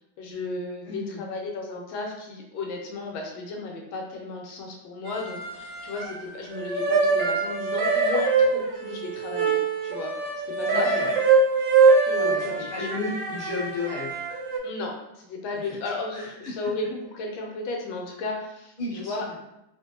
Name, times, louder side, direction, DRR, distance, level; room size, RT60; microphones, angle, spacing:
voice 1, 0.2-9.6 9.8-10.1 10.5-10.9 12.1-13.0 14.6-19.3, left 3 dB, 85° left, 1 dB, 1.4 m, -34 dB
voice 2, 0.8-1.2 10.7-11.2 12.1-14.2 15.7-15.8 16.1-16.5 18.8-19.3, left 3 dB, 30° left, -8 dB, 0.9 m, -33 dB
sound 1, 5.1-6.2 6.5-14.6, right 4 dB, 80° right, 1.3 m, -23 dB
2.9 x 2.5 x 2.6 m, 0.87 s
omnidirectional pair, 2.1 m